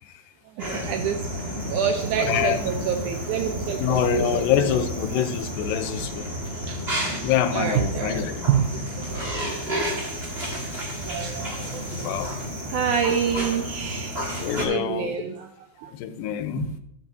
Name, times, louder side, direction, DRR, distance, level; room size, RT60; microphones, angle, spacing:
voice 1, 0.5-4.9 6.5-7.1 7.5-8.7 8.9-10.1 11.0-14.3 14.6-15.9 16.6-16.8, right 8 dB, 85° right, 5 dB, 1.7 m, -28 dB
sound 1, 0.6-14.7, equal, 45° right, 0.7 m, -31 dB
voice 2, 2.2-2.7 3.8-6.3 7.1-8.3 12.0-12.3 14.4-15.2 16.0-16.7, left 10 dB, 85° left, 9 dB, 2.3 m, -25 dB
12.5 x 7.2 x 2.6 m, 0.75 s
omnidirectional pair, 4.2 m